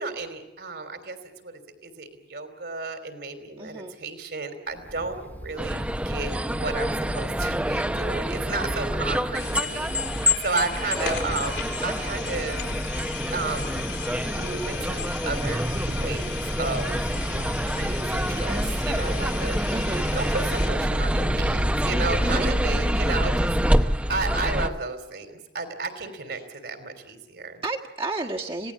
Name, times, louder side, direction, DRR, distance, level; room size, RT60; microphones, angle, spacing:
voice 1, 0.0-12.6 13.3-13.8 14.2-17.0 17.4-19.6 20.1-27.6, right 3 dB, 65° right, 8 dB, 3.3 m, -33 dB
voice 2, 3.6-4.0 19.7-20.1 22.2-22.6 27.6-28.7, right 2 dB, 30° right, -1 dB, 1.5 m, -31 dB
Wind, 4.7-23.1, equal, 10° left, 1.1 m, -43 dB
sound 1, 5.6-24.7, equal, 5° right, 0.8 m, -26 dB
sound 2, 9.3-20.7, left 6 dB, 80° left, 4.0 m, -37 dB
26.0 x 18.0 x 8.6 m, 0.90 s
head